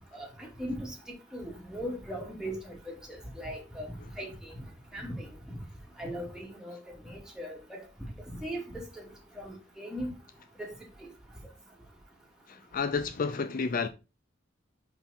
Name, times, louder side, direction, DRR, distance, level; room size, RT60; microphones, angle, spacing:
voice 1, 0.1-0.9 1.3-3.9 4.2-4.6 4.9-5.6 6.0-6.8 7.1-7.8 8.3-8.6 9.0-9.1 9.4-10.1 10.6-10.7 11.0-11.1, equal, 5° right, 2.3 m, -39 dB
voice 2, 12.5-13.9, left 5 dB, 50° left, 0.4 m, -30 dB
6.0 x 5.6 x 4.1 m
head